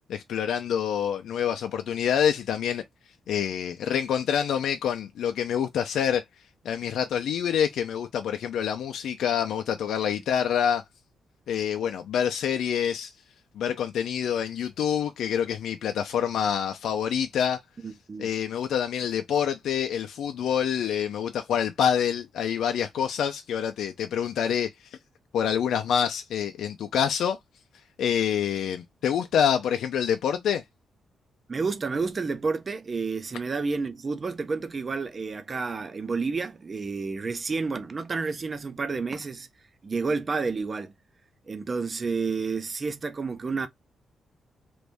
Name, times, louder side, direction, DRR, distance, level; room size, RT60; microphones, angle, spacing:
voice 1, 0.1-2.8 3.3-6.2 6.6-10.8 11.5-13.1 13.6-17.6 18.2-24.7 25.3-27.4 28.0-30.6, left 8 dB, 75° left, 0.4 m, -26 dB
voice 2, 17.8-18.3 31.5-39.5 39.8-40.9 41.5-43.7, right 4 dB, 25° right, 0.4 m, -30 dB
3.0 x 2.6 x 3.4 m
wide cardioid pair, 180°, 0 cm